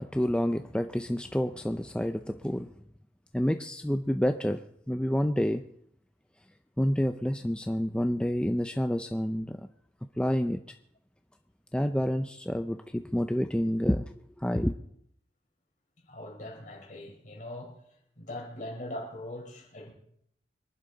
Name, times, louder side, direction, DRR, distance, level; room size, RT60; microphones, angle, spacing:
voice 1, 0.0-2.7 3.3-4.6 4.9-5.6 6.8-9.7 10.2-10.6 11.7-14.1 14.4-14.7, equal, 5° left, 0.5 m, -28 dB
voice 2, 16.1-17.8 18.2-19.9, left 1 dB, 45° left, 4.5 m, -41 dB
25.5 x 11.5 x 4.0 m
head